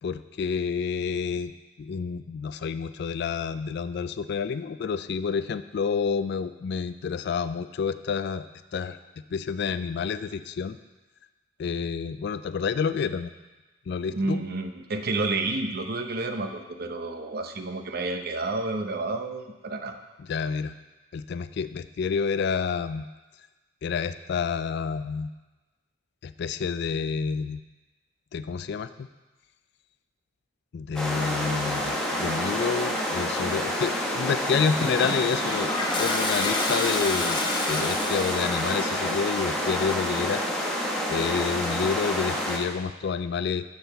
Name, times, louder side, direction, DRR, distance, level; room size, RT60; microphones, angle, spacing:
voice 1, 0.0-1.5 1.8-8.5 8.7-9.0 9.3-10.8 11.6-13.3 13.9-14.4 20.2-20.8 21.1-23.1 23.8-25.3 26.2-27.6 28.3-29.1 30.7-37.4 37.7-40.4 41.1-43.6, left 6 dB, 55° left, 12 dB, 0.3 m, -29 dB
voice 2, 14.1-20.0, right 2 dB, 50° right, 6 dB, 0.7 m, -30 dB
sound 1, 30.9-42.6, equal, 5° left, 1.1 m, -28 dB
Toilet flush, 34.7-39.0, left 3 dB, 25° left, 0.8 m, -30 dB
10.5 x 4.0 x 6.9 m, 1.2 s
head